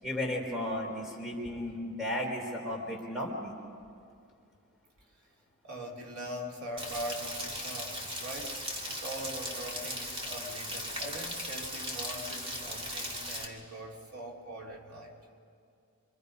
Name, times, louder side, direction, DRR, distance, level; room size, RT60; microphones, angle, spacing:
voice 1, 0.0-3.5, left 1 dB, ahead, -4 dB, 4.2 m, -34 dB
voice 2, 5.6-15.1, right 1 dB, 85° right, -2 dB, 3.3 m, -42 dB
Rain, 6.8-13.5, equal, 25° right, 2.3 m, -38 dB
26.0 x 26.0 x 5.4 m, 2.4 s
head